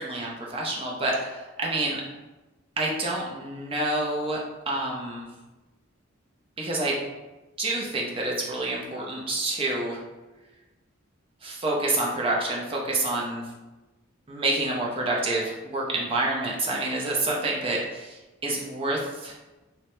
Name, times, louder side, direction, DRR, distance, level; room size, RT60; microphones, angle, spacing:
voice 1, 0.0-2.0 2.8-4.4 4.7-5.3 6.6-7.0 7.6-10.0 11.4-13.5 14.3-19.3, right 2 dB, 25° right, -2 dB, 0.4 m, -28 dB
2.8 x 2.1 x 2.9 m, 1.1 s
head